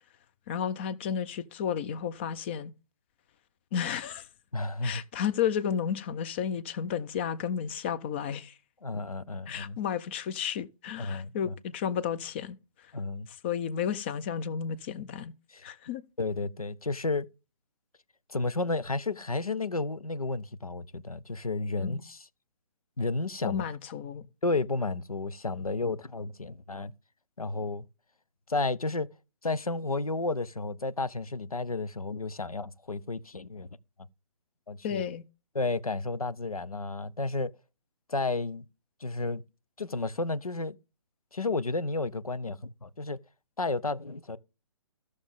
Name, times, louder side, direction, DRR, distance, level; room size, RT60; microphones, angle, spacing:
voice 1, 0.5-2.7 3.7-4.3 4.8-8.5 9.5-12.6 13.4-15.3 15.6-16.0 21.8-22.0 23.4-24.2 34.8-35.2, left 8 dB, 20° left, 0.4 m, -32 dB
voice 2, 4.5-5.0 8.8-9.8 11.0-11.5 12.9-13.3 15.5-15.7 16.2-17.3 18.3-22.3 23.0-23.6 24.4-26.9 27.4-27.8 28.5-29.1 29.4-33.7 34.7-35.0 35.5-37.5 38.1-38.7 39.0-39.4 39.8-40.8 41.3-43.2 43.6-44.4, left 3 dB, 90° left, 0.7 m, -32 dB
14.0 x 6.4 x 3.5 m
figure-of-eight pair, 140°, 18 cm